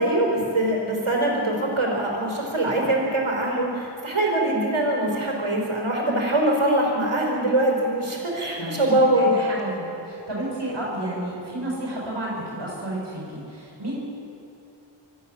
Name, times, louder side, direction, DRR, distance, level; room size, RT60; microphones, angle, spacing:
voice 1, 0.0-9.4, right 1 dB, 90° right, 0 dB, 4.9 m, -23 dB
voice 2, 8.6-14.0, right 1 dB, 60° right, -4 dB, 6.6 m, -31 dB
26.0 x 14.0 x 7.4 m, 2.7 s
wide cardioid pair, 55°, 48 cm